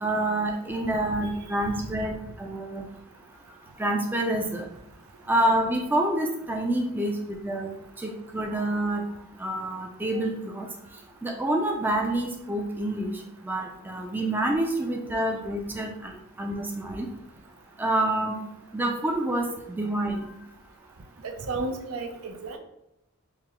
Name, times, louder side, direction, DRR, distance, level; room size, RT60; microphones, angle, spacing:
voice 1, 0.0-2.8 3.8-4.6 5.3-7.2 7.4-7.7 8.0-9.1 9.4-10.7 11.2-13.1 13.4-16.1 16.4-17.1 17.8-18.4 18.7-19.5 19.8-20.2, right 1 dB, 10° right, 1 dB, 0.3 m, -27 dB
voice 2, 21.2-22.6, right 3 dB, 85° right, 5 dB, 0.5 m, -33 dB
4.6 x 2.0 x 3.6 m, 0.83 s
head